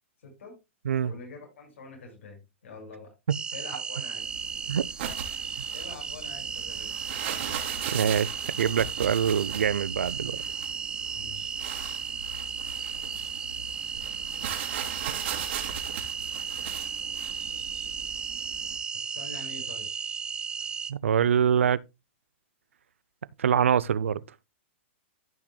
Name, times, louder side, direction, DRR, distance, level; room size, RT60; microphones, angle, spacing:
voice 1, 0.2-0.6 1.0-3.1 3.5-4.4 5.7-7.1 11.1-11.6 19.1-19.9, left 3 dB, 80° left, 5.8 m, -45 dB
sound 1, 3.3-20.9, right 6 dB, 10° right, 0.6 m, -35 dB
sound 2, 4.2-18.8, right 8 dB, 60° right, 2.8 m, -39 dB
voice 2, 7.9-10.4 20.9-21.8 23.4-24.2, right 8 dB, 90° right, 0.6 m, -24 dB
14.0 x 6.1 x 2.2 m
hypercardioid pair, 140°, 7 cm